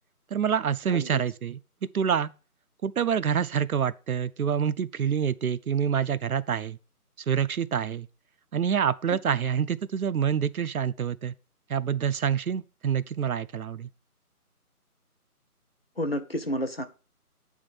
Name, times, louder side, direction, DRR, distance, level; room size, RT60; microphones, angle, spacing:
voice 1, 0.3-1.6 1.9-2.3 2.8-6.8 7.3-8.1 8.5-11.3 11.7-13.9, right 8 dB, 70° right, 0.5 m, -27 dB
voice 2, 0.9-1.2 16.0-16.9, equal, 40° left, 0.7 m, -30 dB
8.5 x 3.6 x 5.5 m
figure-of-eight pair, 175°, 46 cm